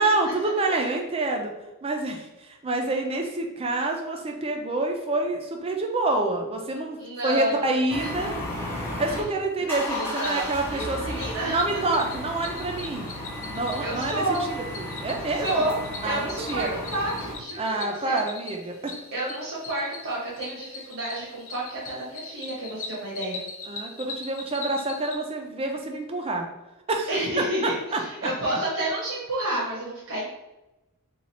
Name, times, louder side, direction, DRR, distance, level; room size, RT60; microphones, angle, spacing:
voice 1, 0.0-1.5 1.8-7.0 7.2-8.3 9.0-11.2 11.5-13.1 13.5-15.6 16.0-16.8 17.6-18.9 23.7-26.5 26.9-27.1 27.4-28.3, right 2 dB, 25° right, 2 dB, 0.4 m, -27 dB
voice 2, 7.0-7.7 8.0-8.3 9.1-9.2 10.0-11.8 13.8-14.4 15.4-15.7 16.0-18.2 19.1-23.4 27.1-30.3, right 1 dB, 60° right, -7 dB, 0.9 m, -30 dB
sound 1, 7.9-9.2 9.6-17.3, left 1 dB, 10° left, 0.7 m, -34 dB
Cricket, 10.0-25.2, left 3 dB, 65° left, 0.6 m, -41 dB
3.0 x 2.4 x 4.0 m, 0.99 s
head